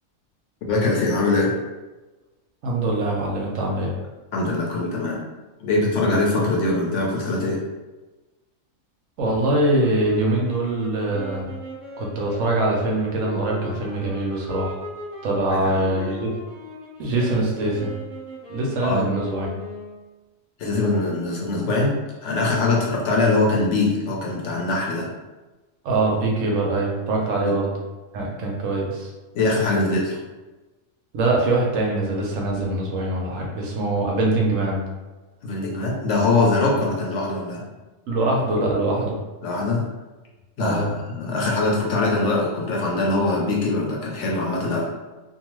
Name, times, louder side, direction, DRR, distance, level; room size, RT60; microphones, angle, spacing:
voice 1, 0.7-1.5 4.3-5.2 5.6-7.6 15.6-16.2 18.8-19.1 20.6-22.0 22.2-25.1 27.4-27.5 29.3-30.2 35.4-37.7 39.4-39.8 40.6-44.9, left 2 dB, 65° left, -2 dB, 0.8 m, -22 dB
voice 2, 2.6-3.9 9.2-11.5 12.0-14.8 15.2-16.3 17.0-17.9 18.5-19.5 25.8-27.7 28.1-29.1 31.1-34.8 38.1-39.2 40.6-40.9, right 2 dB, 70° right, -2 dB, 1.0 m, -23 dB
sound 1, 9.8-20.1, left 1 dB, 25° right, 0.9 m, -38 dB
2.6 x 2.3 x 3.0 m, 1.2 s
omnidirectional pair, 1.4 m